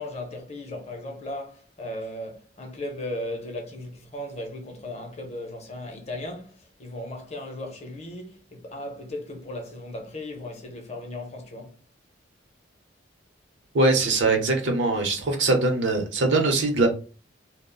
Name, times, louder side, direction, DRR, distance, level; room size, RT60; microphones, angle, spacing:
voice 1, 0.0-11.8, left 1 dB, 35° left, 0.6 m, -36 dB
voice 2, 13.7-16.9, right 2 dB, 75° right, 0.7 m, -22 dB
2.3 x 2.0 x 3.7 m
head